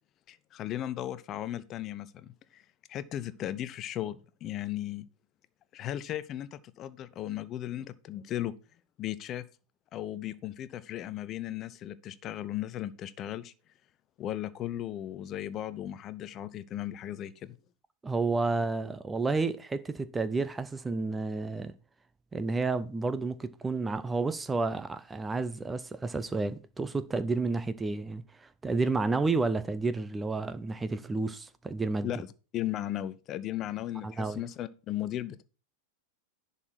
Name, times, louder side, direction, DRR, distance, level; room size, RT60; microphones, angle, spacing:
voice 1, 0.3-2.6 2.9-5.1 5.7-8.5 9.0-9.5 9.9-13.5 14.2-17.6 32.0-32.3 32.5-35.4, left 12 dB, 30° left, 0.5 m, -36 dB
voice 2, 18.0-21.7 22.3-32.1 34.0-34.4, right 3 dB, 10° right, 0.5 m, -31 dB
10.5 x 4.1 x 4.6 m
figure-of-eight pair, 90°, 0 cm